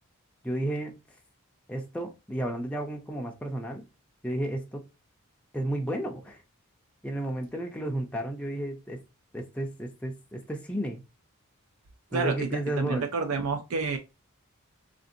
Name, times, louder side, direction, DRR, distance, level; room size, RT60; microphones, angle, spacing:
voice 1, 0.4-1.0 1.7-3.9 4.2-4.8 5.5-6.4 7.0-9.0 9.3-11.0 12.1-13.1, right 1 dB, 5° left, 0.4 m, -32 dB
voice 2, 12.1-12.5 12.8-14.0, right 4 dB, 75° right, 0.5 m, -29 dB
3.5 x 2.5 x 2.5 m
head